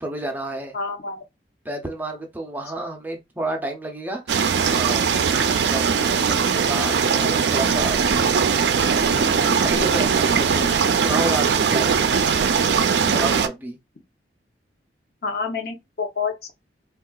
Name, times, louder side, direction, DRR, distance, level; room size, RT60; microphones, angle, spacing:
voice 1, 0.0-0.8 1.6-10.7 10.9-12.1 13.1-13.8, right 1 dB, 10° right, 0.5 m, -31 dB
voice 2, 0.7-1.2 15.2-16.5, left 5 dB, 60° left, 0.7 m, -28 dB
sound 1, 4.3-13.5, right 6 dB, 70° right, 0.4 m, -20 dB
3.7 x 2.3 x 2.3 m
head